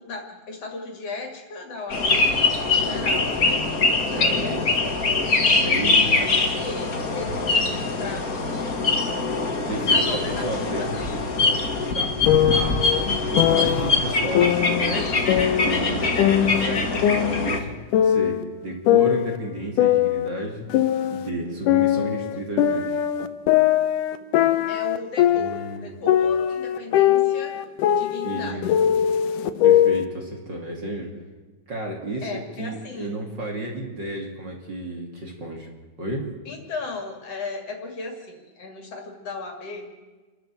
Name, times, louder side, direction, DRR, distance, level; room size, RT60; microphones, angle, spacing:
voice 1, 0.0-2.3 2.7-3.6 3.9-4.0 4.7-5.1 5.6-5.8 6.1-6.3 6.6-7.7 8.0-8.8 9.1-9.2 9.9-10.9 24.7-27.5 27.9-28.6 32.2-33.2 36.4-39.9, left 3 dB, 50° left, 3 dB, 3.2 m, -36 dB
sound 1, 1.9-17.6, left 3 dB, 35° left, 1.8 m, -23 dB
voice 2, 2.8-3.2 3.5-3.6 4.1-4.7 5.5-6.3 7.6-7.8 9.7-10.0 10.4-10.9 11.9-12.1 12.5-12.8 13.2-15.3 15.6-17.7 18.0-20.6 21.1-23.0 25.3-25.9 28.2-28.6 29.6-31.1 31.7-32.3 32.6-35.7 36.0-36.3, right 2 dB, 35° right, 0 dB, 3.1 m, -32 dB
sound 2, 12.3-13.9 14.4-15.9 16.2-18.4 18.9-21.3 21.7-25.8 26.1-30.1, left 11 dB, 80° left, 2.4 m, -21 dB
29.0 x 11.5 x 7.6 m, 1.3 s
omnidirectional pair, 3.6 m